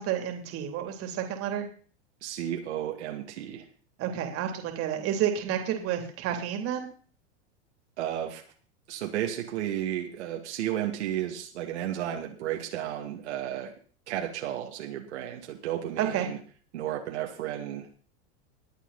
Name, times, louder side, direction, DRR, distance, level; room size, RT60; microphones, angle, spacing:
voice 1, 0.0-1.7 4.0-6.9 16.0-16.3, right 9 dB, 40° right, 5 dB, 3.2 m, -30 dB
voice 2, 2.2-3.7 8.0-8.4 8.9-13.7 14.1-16.4 16.7-18.0, right 11 dB, 75° right, 1 dB, 2.5 m, -33 dB
21.0 x 8.4 x 4.2 m, 0.43 s
hypercardioid pair, 125°, 34 cm